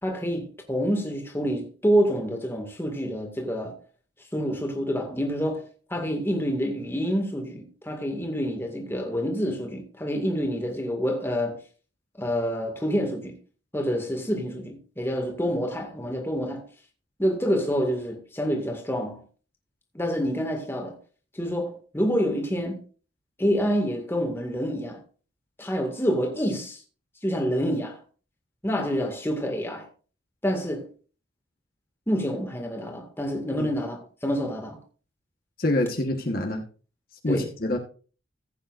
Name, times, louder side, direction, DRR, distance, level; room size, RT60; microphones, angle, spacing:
voice 1, 0.0-3.8 4.3-11.6 12.2-13.4 13.7-16.7 17.2-19.2 19.9-21.0 21.3-22.8 23.4-25.0 25.6-26.8 27.2-28.0 28.6-29.9 30.4-30.9 32.1-34.8 37.3-37.5, equal, 10° left, 2.0 m, -27 dB
voice 2, 35.6-36.6 37.2-37.8, left 1 dB, 50° left, 1.3 m, -26 dB
15.5 x 8.6 x 2.6 m
head